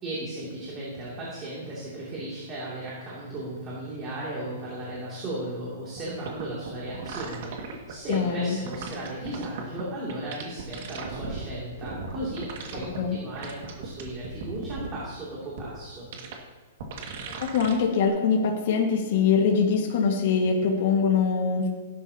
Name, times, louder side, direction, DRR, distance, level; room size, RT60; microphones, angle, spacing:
voice 1, 0.0-12.5 12.7-16.1, right 1 dB, 20° right, -6 dB, 2.6 m, -36 dB
sound 1, 6.0-6.1 6.3-8.2 8.7-9.8 10.1-11.4 11.8-13.0 13.3-15.0 15.6-15.7 16.1-16.4 16.8-17.7 18.1-18.2, right 5 dB, 50° right, 1.9 m, -36 dB
voice 2, 8.1-8.6 12.9-13.2 17.4-21.7, left 5 dB, 50° left, 0 dB, 1.7 m, -23 dB
17.0 x 11.0 x 2.9 m, 1.5 s
hypercardioid pair, 170°, 0 cm